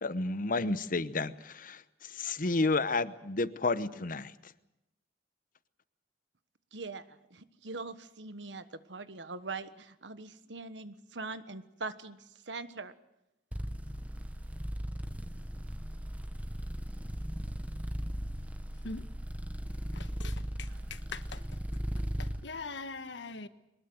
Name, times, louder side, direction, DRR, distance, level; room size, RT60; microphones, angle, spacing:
voice 1, 0.0-4.5, left 3 dB, 50° left, 15 dB, 1.0 m, -31 dB
voice 2, 6.7-7.0 7.3-12.9 20.7-20.8, right 3 dB, 90° right, 12 dB, 1.4 m, -42 dB
sound 1, 13.5-22.4, equal, 10° right, 1.4 m, -37 dB
voice 3, 19.9-21.4 22.2-23.5, left 4 dB, 85° left, 11 dB, 1.4 m, -42 dB
23.0 x 20.5 x 7.9 m, 0.91 s
head